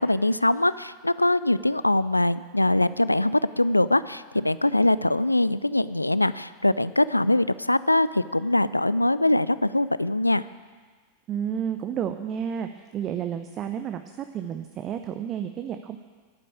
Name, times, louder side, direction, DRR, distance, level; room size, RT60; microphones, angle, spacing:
voice 1, 0.0-10.5, left 1 dB, 85° left, 16 dB, 0.3 m, -22 dB
voice 2, 11.3-14.0 14.3-16.0, right 8 dB, 30° right, 8 dB, 0.6 m, -31 dB
11.0 x 8.5 x 8.5 m, 1.5 s
figure-of-eight pair, 90°, 0 cm